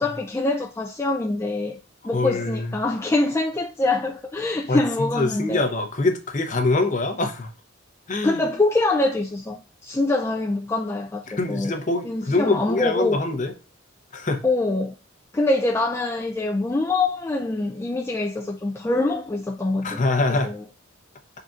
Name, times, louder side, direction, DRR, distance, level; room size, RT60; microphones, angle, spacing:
voice 1, 0.0-1.8 2.0-5.6 8.2-11.7 12.0-13.2 14.4-14.9 15.3-20.0 20.4-20.6, left 2 dB, 15° left, 0.3 m, -24 dB
voice 2, 2.1-2.8 4.7-7.5 8.1-8.4 11.3-13.5 14.1-14.4 19.8-20.5, left 2 dB, 35° left, 0.7 m, -24 dB
5.6 x 3.8 x 2.4 m
head